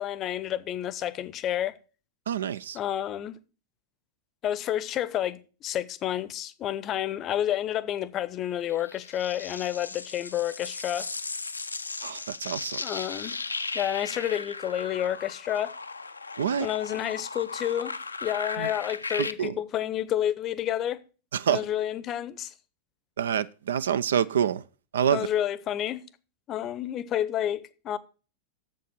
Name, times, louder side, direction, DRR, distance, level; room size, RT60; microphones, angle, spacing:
voice 1, 0.0-1.8 2.7-3.4 4.4-11.1 12.8-13.4 13.7-15.7 16.6-17.9 18.2-21.0 21.5-22.5 25.1-26.0 26.5-28.0, left 11 dB, 30° left, 0.7 m, -30 dB
voice 2, 2.3-2.8 12.0-12.8 16.4-16.7 18.6-18.7 19.2-19.6 21.3-21.6 23.2-24.6 24.9-25.3, right 8 dB, 65° right, 0.4 m, -27 dB
sound 1, 8.7-19.3, left 4 dB, 80° left, 0.5 m, -37 dB
7.6 x 7.3 x 6.2 m
figure-of-eight pair, 90°, 0 cm